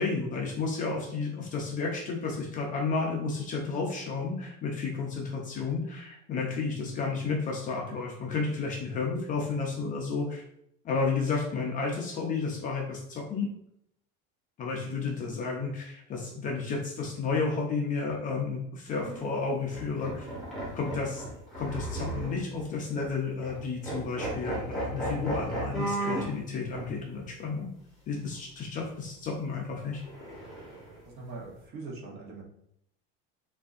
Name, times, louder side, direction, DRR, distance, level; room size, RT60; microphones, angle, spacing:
voice 1, 0.0-10.4 10.8-13.5 14.6-20.3 20.7-21.2 21.5-27.7 28.1-30.0, left 4 dB, 25° left, 0 dB, 0.6 m, -32 dB
sound 1, 18.9-19.1 19.7-22.6 23.0-23.1 23.4-23.6 23.8-26.3 26.7-26.9 30.0-31.0, right 1 dB, ahead, 1.7 m, -35 dB
voice 2, 31.0-32.4, right 3 dB, 35° right, -1 dB, 1.0 m, -42 dB
6.5 x 2.7 x 2.5 m, 0.74 s
cardioid pair, 165°, 30 cm